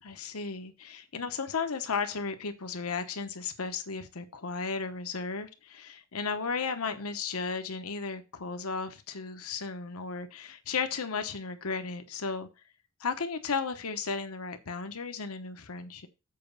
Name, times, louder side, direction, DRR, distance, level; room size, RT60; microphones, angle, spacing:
voice 1, 0.0-12.5 13.0-16.1, left 5 dB, 80° left, 1.0 m, -34 dB
7.6 x 4.9 x 5.2 m
head